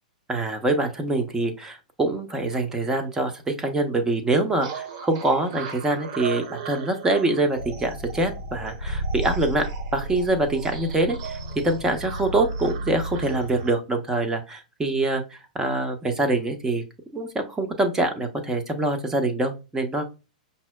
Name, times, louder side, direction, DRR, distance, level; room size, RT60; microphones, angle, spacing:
voice 1, 0.3-9.6 9.9-11.4 11.6-16.8 17.1-20.0, right 2 dB, 10° right, 5 dB, 0.7 m, -25 dB
sound 1, 4.6-13.7, right 7 dB, 45° right, 0.7 m, -39 dB
sound 2, 7.6-13.7, right 1 dB, 75° left, 0.5 m, -33 dB
5.5 x 2.0 x 2.2 m, 0.29 s
figure-of-eight pair, 105°, 4 cm